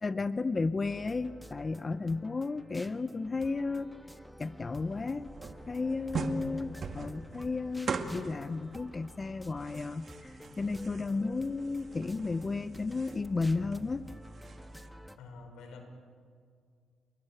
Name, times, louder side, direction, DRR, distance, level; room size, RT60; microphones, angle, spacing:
voice 1, 0.0-3.9 4.4-5.3 5.7-14.0, left 3 dB, 30° left, 13 dB, 0.6 m, -33 dB
sound 1, 0.8-15.2, equal, ahead, 1.3 m, -50 dB
sound 2, 4.6-14.9, right 4 dB, 45° right, 2.3 m, -42 dB
voice 2, 11.1-11.5 15.2-15.8, left 4 dB, 80° left, 6 dB, 5.6 m, -50 dB
29.5 x 21.0 x 9.0 m, 2.1 s
cardioid pair, 90°, 0 cm